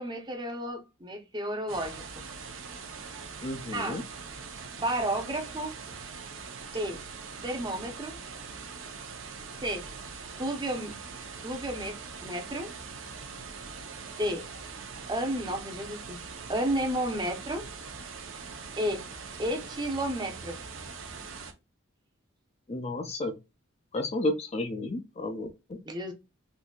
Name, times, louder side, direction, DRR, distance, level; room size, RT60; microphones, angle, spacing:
voice 1, 0.0-2.2 3.7-4.0 4.8-5.7 6.7-7.0 7.4-8.2 9.6-9.9 10.4-10.9 11.4-12.7 14.2-14.5 15.1-16.2 16.5-17.7 18.8-19.0 19.4-20.6 25.9-26.1, right 1 dB, 20° right, 0.7 m, -32 dB
sound 1, 1.7-21.5, right 5 dB, 65° right, 0.7 m, -42 dB
voice 2, 3.4-4.0 22.7-23.3 23.9-25.8, left 2 dB, 30° left, 0.5 m, -32 dB
3.9 x 2.7 x 2.3 m
head